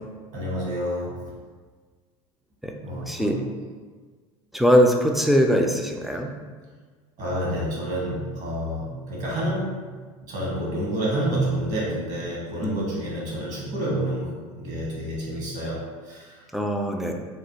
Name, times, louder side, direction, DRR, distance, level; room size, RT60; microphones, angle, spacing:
voice 1, 0.3-1.2 2.8-3.4 7.2-9.9 10.2-16.4, right 1 dB, 45° right, -5 dB, 1.4 m, -29 dB
voice 2, 4.5-6.3 12.6-12.8 16.5-17.1, equal, ahead, 2 dB, 0.3 m, -21 dB
3.2 x 2.2 x 3.1 m, 1.5 s
hypercardioid pair, 80°, 17 cm